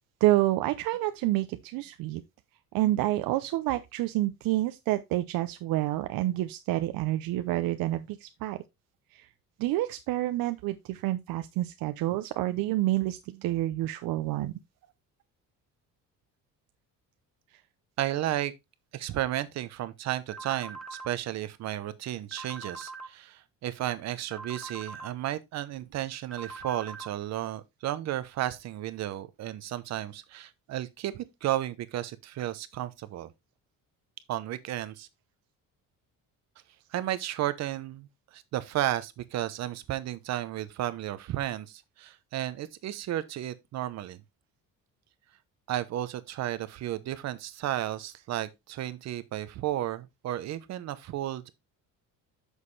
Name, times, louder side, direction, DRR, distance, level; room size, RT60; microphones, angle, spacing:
voice 1, 0.2-2.2 2.7-8.6 9.1-9.3 9.6-14.5, right 16 dB, 80° right, 0.6 m, -28 dB
voice 2, 18.0-18.5 18.9-33.3 34.3-35.1 36.9-38.1 38.3-44.2 45.7-51.5, right 13 dB, 50° right, 0.8 m, -33 dB
sound 1, 20.3-21.1 22.3-23.1 24.3-25.1 26.3-27.1, right 4 dB, ahead, 1.1 m, -42 dB
7.6 x 6.5 x 3.2 m
cardioid pair, 180°, 34 cm